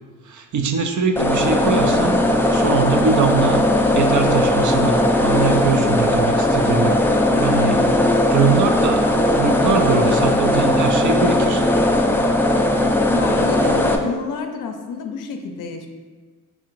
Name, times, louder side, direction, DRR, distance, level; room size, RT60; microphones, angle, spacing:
voice 1, 0.3-3.6 3.9-6.9 7.4-7.8 8.3-9.0 9.3-11.6, right 5 dB, 55° right, 5 dB, 0.6 m, -22 dB
sound 1, 1.2-14.0, left 1 dB, 5° left, 0.3 m, -18 dB
voice 2, 7.3-8.0 13.1-15.9, left 5 dB, 65° left, 5 dB, 0.5 m, -28 dB
5.1 x 2.4 x 3.1 m, 1.4 s
cardioid pair, 75°, 35 cm